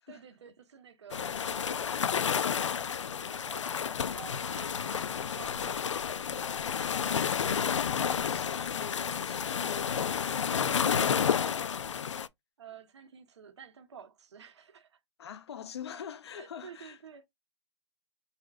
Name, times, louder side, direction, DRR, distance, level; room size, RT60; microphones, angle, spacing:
voice 1, 0.1-3.7 4.0-5.9 8.6-8.7 12.6-15.0 16.4-17.3, right 7 dB, 70° right, 1.5 m, -51 dB
sound 1, 1.1-12.3, left 7 dB, 85° left, 0.5 m, -31 dB
voice 2, 3.8-4.3 6.7-12.1 15.2-17.0, left 8 dB, 60° left, 1.0 m, -46 dB
4.8 x 4.1 x 2.5 m
hypercardioid pair, 150°, 15 cm